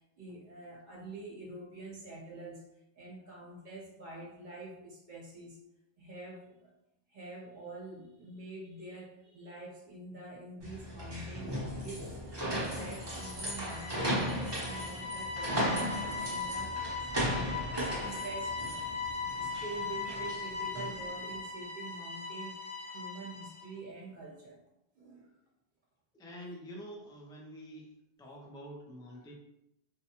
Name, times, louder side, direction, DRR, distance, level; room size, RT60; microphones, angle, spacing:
voice 1, 0.0-2.6 2.9-5.6 6.0-6.7 7.1-22.6 22.9-24.6 24.9-25.3, right 2 dB, 50° right, -3 dB, 1.1 m, -46 dB
sound 1, 10.6-21.0, equal, 25° right, 0.8 m, -36 dB
sound 2, 12.9-23.7, left 4 dB, 35° left, 1.1 m, -39 dB
voice 2, 26.1-29.3, equal, 5° left, -1 dB, 0.4 m, -47 dB
4.2 x 2.2 x 2.9 m, 0.84 s
omnidirectional pair, 1.1 m